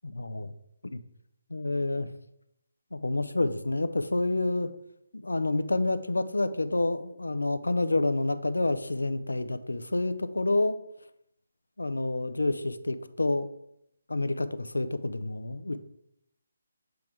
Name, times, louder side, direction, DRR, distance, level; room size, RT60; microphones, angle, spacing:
voice 1, 0.0-0.5 0.8-1.0 1.5-2.1 2.9-4.7 5.1-10.8 11.8-13.5 14.1-15.8, left 2 dB, 70° left, 12 dB, 0.5 m, -28 dB
7.7 x 3.5 x 4.7 m, 0.78 s
figure-of-eight pair, 145°, 0 cm